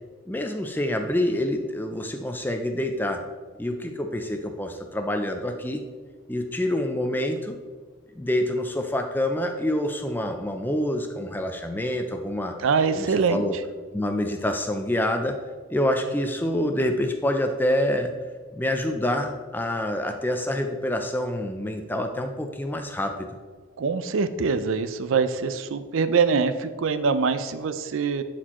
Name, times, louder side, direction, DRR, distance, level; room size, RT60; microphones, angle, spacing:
voice 1, 0.3-3.2 3.6-5.8 6.3-7.6 8.1-12.6 12.9-13.6 13.9-15.4 15.7-18.1 18.5-23.3, left 1 dB, 10° left, 5 dB, 0.4 m, -27 dB
voice 2, 12.6-13.4 23.8-28.2, right 5 dB, 75° right, 11 dB, 0.4 m, -24 dB
11.5 x 4.4 x 3.0 m, 1.5 s
head